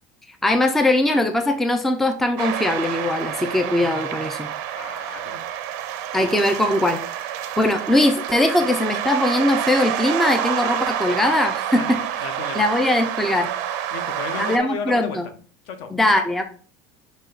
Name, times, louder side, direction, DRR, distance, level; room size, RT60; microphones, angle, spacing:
voice 1, 0.4-4.5 6.1-7.0 7.6-12.0 12.6-13.5 14.4-15.2 15.9-16.4, left 1 dB, 5° left, 6 dB, 0.3 m, -20 dB
sound 1, 2.4-14.6, right 10 dB, 85° right, 0.5 m, -28 dB
voice 2, 4.7-5.5 11.8-12.6 13.9-15.2 15.6-15.9, left 5 dB, 65° left, 7 dB, 0.8 m, -34 dB
6.2 x 2.2 x 3.8 m, 0.42 s
cardioid pair, 165°, 9 cm